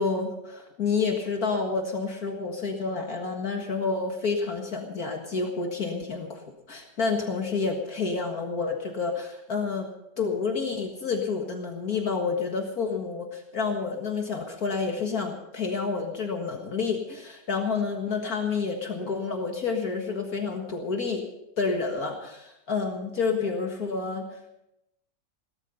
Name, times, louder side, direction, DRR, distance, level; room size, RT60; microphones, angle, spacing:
voice 1, 0.0-6.4 6.7-9.9 10.2-21.2 21.6-24.3, left 4 dB, 55° left, 2 dB, 2.1 m, -29 dB
18.0 x 13.0 x 5.5 m, 0.85 s
omnidirectional pair, 1.9 m